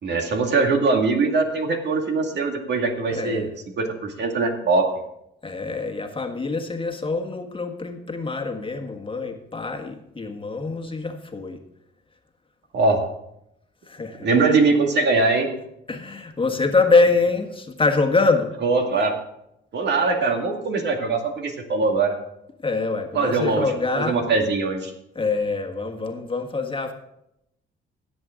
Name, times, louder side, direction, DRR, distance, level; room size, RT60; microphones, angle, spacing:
voice 1, 0.0-3.5 3.8-4.9 12.7-13.0 14.2-15.5 18.6-19.1 19.7-22.1 23.1-23.7 24.0-24.9, right 3 dB, 60° right, 3 dB, 2.2 m, -21 dB
voice 2, 3.1-3.5 5.4-11.6 13.8-14.3 15.9-18.5 22.6-24.2 25.1-26.9, left 3 dB, 25° left, 4 dB, 1.5 m, -24 dB
17.0 x 7.8 x 3.8 m, 0.80 s
cardioid pair, 90°, 20 cm